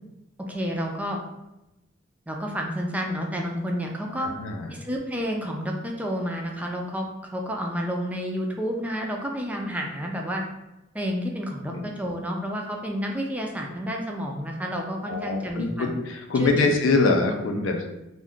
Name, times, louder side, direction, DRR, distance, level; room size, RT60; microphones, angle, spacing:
voice 1, 0.5-1.2 2.3-4.3 4.7-10.4 10.9-15.9 16.4-16.8, equal, 10° right, 0 dB, 0.3 m, -30 dB
voice 2, 4.2-4.7 11.7-11.8 15.1-17.8, left 3 dB, 85° left, 3 dB, 0.5 m, -24 dB
2.6 x 2.3 x 3.6 m, 0.95 s
head